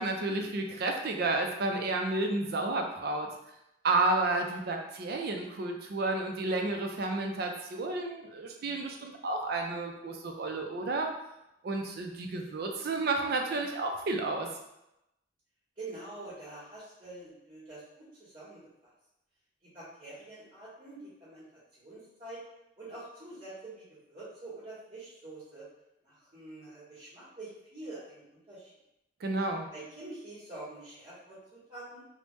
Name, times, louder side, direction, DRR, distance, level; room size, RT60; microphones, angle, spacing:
voice 1, 0.0-3.3 3.8-11.1 11.6-14.5 29.2-29.7, right 2 dB, 55° right, 3 dB, 0.4 m, -31 dB
voice 2, 15.8-18.6 19.7-21.4 21.8-22.4 22.8-25.6 26.0-28.7 29.7-32.0, right 2 dB, 30° right, -12 dB, 1.1 m, -46 dB
3.1 x 2.1 x 3.0 m, 0.87 s
head